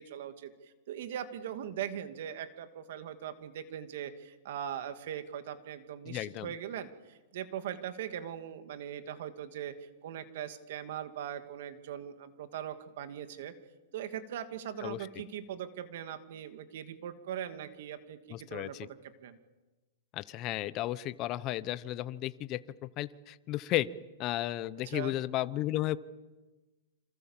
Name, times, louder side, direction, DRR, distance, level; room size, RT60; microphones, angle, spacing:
voice 1, 0.0-9.7 10.0-13.5 13.9-19.0 19.2-19.4 24.8-25.1, right 10 dB, 60° right, 9 dB, 2.4 m, -40 dB
voice 2, 6.1-6.5 14.8-15.0 18.3-18.9 20.1-23.9 24.2-26.0, left 15 dB, 30° left, 16 dB, 0.9 m, -34 dB
28.0 x 26.5 x 7.4 m, 1.2 s
supercardioid pair, 160°, 0 cm